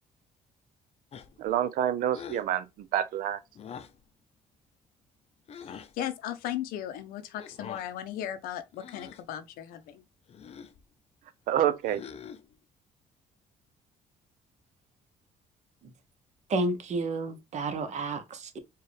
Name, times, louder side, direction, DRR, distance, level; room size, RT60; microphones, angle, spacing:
sound 1, 1.1-1.5 2.1-2.5 3.6-4.0 5.5-5.9 7.4-7.9 8.7-9.3 10.3-10.8 11.8-12.5, left 7 dB, 45° left, 0.6 m, -45 dB
voice 1, 1.4-3.4 11.5-12.0, right 10 dB, 75° right, 0.6 m, -27 dB
voice 2, 5.5-10.0, left 11 dB, 85° left, 0.7 m, -37 dB
voice 3, 16.5-18.6, right 2 dB, 50° right, 1.0 m, -31 dB
4.5 x 2.4 x 3.3 m
cardioid pair, 95°, 15 cm